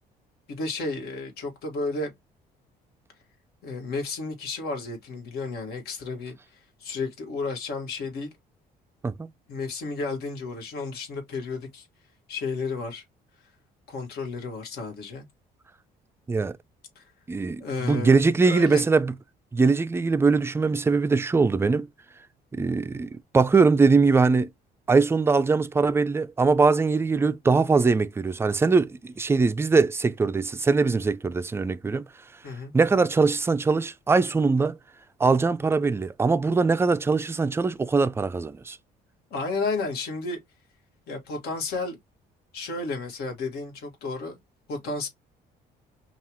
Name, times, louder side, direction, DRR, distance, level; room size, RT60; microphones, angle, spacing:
voice 1, 0.5-2.1 3.6-6.3 6.8-8.3 9.5-11.9 12.3-13.0 13.9-15.2 16.9-17.1 17.6-18.8 32.4-32.7 39.3-40.4 41.1-42.0 42.5-44.4 44.7-45.1, left 3 dB, 70° left, 1.7 m, -32 dB
voice 2, 17.3-19.1 19.5-21.9 22.5-24.5 24.9-32.1 32.7-34.8 35.2-38.8, right 4 dB, 15° right, 0.4 m, -22 dB
5.5 x 2.4 x 2.9 m
cardioid pair, 110°, 17 cm